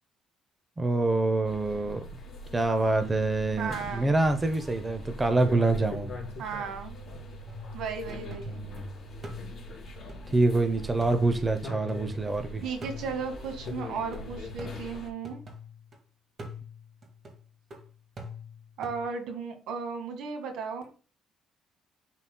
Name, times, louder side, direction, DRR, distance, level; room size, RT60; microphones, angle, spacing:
voice 1, 0.8-2.0 2.5-6.1 8.6-8.8 10.3-12.6, right 2 dB, 15° right, 0.8 m, -26 dB
sound 1, 1.4-15.1, left 1 dB, 40° left, 3.0 m, -42 dB
voice 2, 3.6-4.1 6.4-6.9 7.7-8.6 12.6-15.4 18.8-20.8, right 5 dB, 75° right, 1.9 m, -35 dB
sound 2, 7.5-8.8 9.2-12.4 12.8-16.0 16.4-19.0, left 2 dB, 35° right, 2.0 m, -45 dB
11.0 x 4.1 x 2.3 m
cardioid pair, 120°, 0 cm